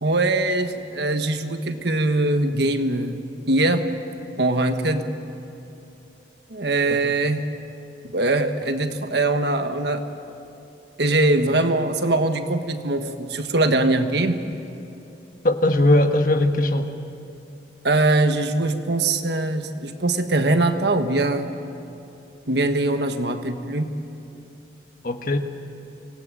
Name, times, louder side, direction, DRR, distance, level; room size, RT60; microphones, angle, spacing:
voice 1, 0.0-3.2 3.5-3.8 4.4-5.0 6.5-7.4 8.1-10.0 11.0-14.4 17.8-21.5 22.5-23.9, right 2 dB, 65° right, 7 dB, 1.4 m, -22 dB
voice 2, 15.4-16.9 25.0-25.4, left 1 dB, 50° left, 6 dB, 1.4 m, -19 dB
24.5 x 18.0 x 9.1 m, 2.8 s
head